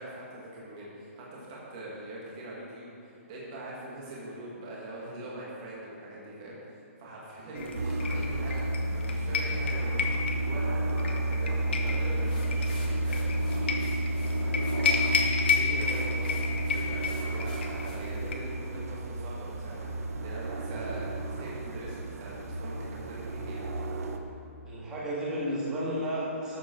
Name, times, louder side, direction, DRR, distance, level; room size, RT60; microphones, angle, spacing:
voice 1, 0.0-10.1 10.4-13.3 13.8-14.8 15.5-19.9 20.2-23.6, right 1 dB, 25° right, -6 dB, 1.9 m, -43 dB
voice 2, 7.3-7.8 20.6-21.0 24.7-26.6, equal, 10° right, -7 dB, 1.8 m, -34 dB
sound 1, 7.5-18.3, left 5 dB, 50° left, 1.1 m, -33 dB
sound 2, 7.8-24.2, right 1 dB, 85° right, 1.0 m, -31 dB
sound 3, 11.9-18.4, left 1 dB, 35° left, 1.5 m, -47 dB
12.5 x 7.8 x 4.5 m, 2.6 s
hypercardioid pair, 175°, 8 cm